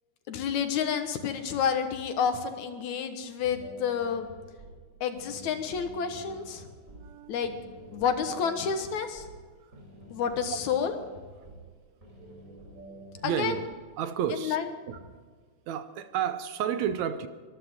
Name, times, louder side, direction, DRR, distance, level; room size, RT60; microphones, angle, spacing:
voice 1, 0.3-4.3 5.0-6.7 7.3-7.5 7.9-9.2 10.1-11.0 13.2-13.6 14.4-14.7, left 7 dB, 80° left, 2.7 m, -29 dB
sound 1, 3.4-13.8, right 1 dB, 25° right, 4.8 m, -49 dB
voice 2, 6.9-7.4 13.2-13.7 14.0-14.6 14.9-15.0 15.7-17.3, right 9 dB, 75° right, 2.1 m, -31 dB
22.5 x 14.0 x 3.7 m
omnidirectional pair, 3.3 m